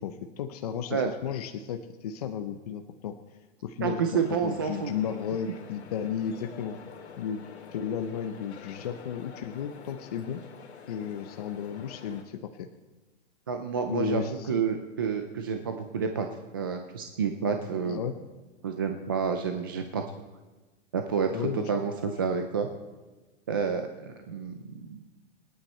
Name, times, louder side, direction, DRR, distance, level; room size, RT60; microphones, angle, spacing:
voice 1, 0.0-3.2 3.6-6.8 7.2-10.4 10.9-12.7 13.9-14.6 17.9-18.2 21.3-21.7, left 8 dB, 35° left, 6 dB, 0.7 m, -34 dB
voice 2, 3.8-4.9 13.5-14.2 14.5-16.3 16.5-18.0 18.6-20.0 20.9-22.7 23.5-25.0, right 6 dB, 20° right, 5 dB, 0.4 m, -29 dB
sound 1, 4.1-12.2, left 6 dB, 75° left, 2.5 m, -47 dB
27.0 x 9.2 x 4.3 m, 1.2 s
hypercardioid pair, 180°, 34 cm